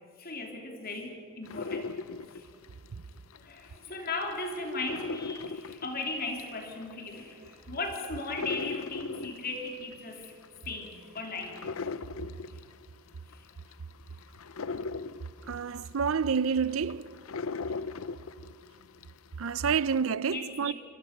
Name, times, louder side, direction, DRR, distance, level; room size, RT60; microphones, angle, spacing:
voice 1, 0.2-1.9 2.3-2.5 3.4-10.4 10.6-12.0 12.5-12.6 13.3-13.5 20.3-20.7, left 3 dB, 45° left, 3.2 m, -37 dB
sound 1, 1.5-3.7 4.1-19.2 19.6-20.1, left 4 dB, 70° left, 0.7 m, -39 dB
voice 2, 15.5-17.2 19.4-20.7, right 6 dB, 65° right, 0.5 m, -28 dB
27.5 x 24.0 x 6.6 m
head